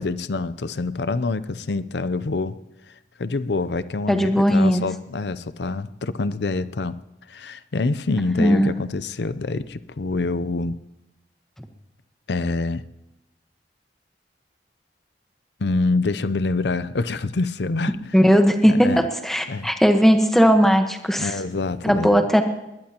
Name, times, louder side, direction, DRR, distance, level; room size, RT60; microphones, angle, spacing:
voice 1, 0.0-2.6 2.9-7.0 7.3-10.8 12.3-12.8 15.6-18.1 18.7-19.0 19.5-19.7 21.2-22.3, left 3 dB, 70° left, 14 dB, 0.6 m, -26 dB
voice 2, 4.1-4.8 8.4-8.7 18.1-21.3 21.8-22.4, equal, ahead, 5 dB, 1.2 m, -17 dB
20.5 x 20.0 x 2.9 m, 0.93 s
head